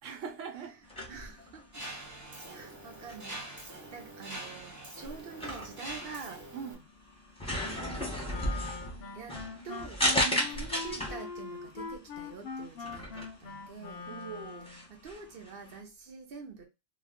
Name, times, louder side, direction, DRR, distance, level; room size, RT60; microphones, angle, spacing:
voice 1, 0.0-0.8 6.5-6.9 10.2-10.6 14.0-14.8, right 7 dB, 80° right, 1.1 m, -42 dB
sound 1, 0.8-15.8, equal, 5° left, 0.8 m, -36 dB
voice 2, 1.1-1.9 2.5-6.4 7.5-8.2 9.1-10.1 10.5-14.1 14.9-16.6, right 5 dB, 55° right, 0.9 m, -46 dB
Mechanisms, 1.7-6.7, right 1 dB, 25° right, 0.4 m, -44 dB
Wind instrument woodwind instrument, 8.3-14.9, left 5 dB, 60° left, 0.7 m, -42 dB
2.4 x 2.4 x 3.5 m
omnidirectional pair, 1.2 m